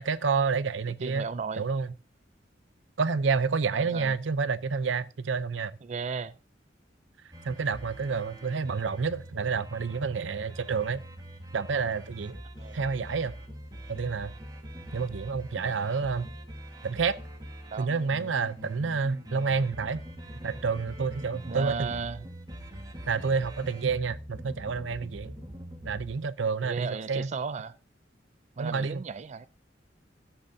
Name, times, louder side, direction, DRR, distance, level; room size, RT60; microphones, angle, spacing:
voice 1, 0.0-1.3 1.6-1.9 3.0-5.7 7.4-11.0 11.5-12.4 12.7-13.3 13.9-14.3 14.9-16.3 16.8-17.2 17.8-20.0 20.4-21.9 23.1-25.3 25.8-27.3 28.6-29.0, right 5 dB, 85° right, 0.6 m, -29 dB
voice 2, 1.0-1.7 3.7-4.2 5.8-6.4 12.6-12.8 17.7-17.9 21.3-22.2 26.6-27.7 28.6-29.5, right 5 dB, 40° right, 0.4 m, -35 dB
sound 1, 7.3-26.2, equal, 20° right, 1.6 m, -44 dB
15.0 x 8.0 x 2.7 m
head